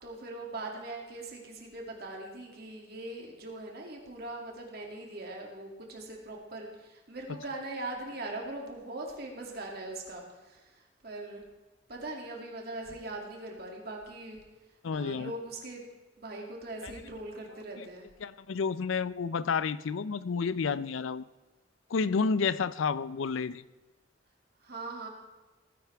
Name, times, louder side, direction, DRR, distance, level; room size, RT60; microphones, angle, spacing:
voice 1, 0.0-11.4 11.9-14.4 14.9-15.8 16.2-18.1 24.6-25.1, right 2 dB, 55° right, 0 dB, 2.4 m, -41 dB
voice 2, 14.8-15.3 16.8-16.9 17.8-17.9 18.2-21.3 21.9-23.6, left 5 dB, 90° left, 16 dB, 0.5 m, -30 dB
18.0 x 10.5 x 3.4 m, 1.2 s
head